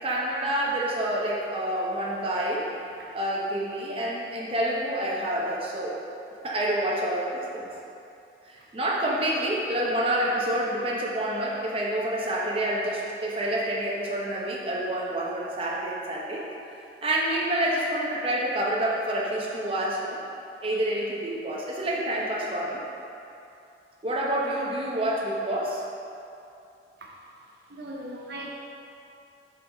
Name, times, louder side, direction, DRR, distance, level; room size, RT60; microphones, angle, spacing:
voice 1, 0.0-2.7 3.1-6.0 6.4-7.7 8.4-16.4 17.0-20.2 20.6-22.8 24.0-25.8, right 1 dB, 30° right, -4 dB, 0.8 m, -28 dB
voice 2, 27.7-28.5, right 1 dB, 65° right, -2 dB, 0.7 m, -39 dB
7.4 x 3.9 x 3.9 m, 2.7 s
head